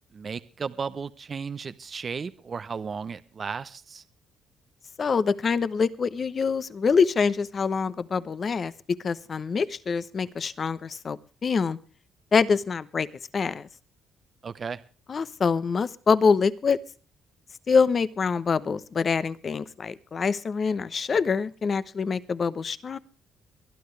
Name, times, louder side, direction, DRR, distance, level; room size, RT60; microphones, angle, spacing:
voice 1, 0.1-4.0 14.4-14.8, right 5 dB, 35° right, 14 dB, 0.7 m, -34 dB
voice 2, 5.0-8.7 9.0-11.8 12.3-13.1 13.3-13.7 15.1-16.8 17.7-23.0, left 5 dB, 40° left, 16 dB, 0.9 m, -25 dB
22.5 x 12.0 x 3.3 m, 0.37 s
cardioid pair, 115°, 0 cm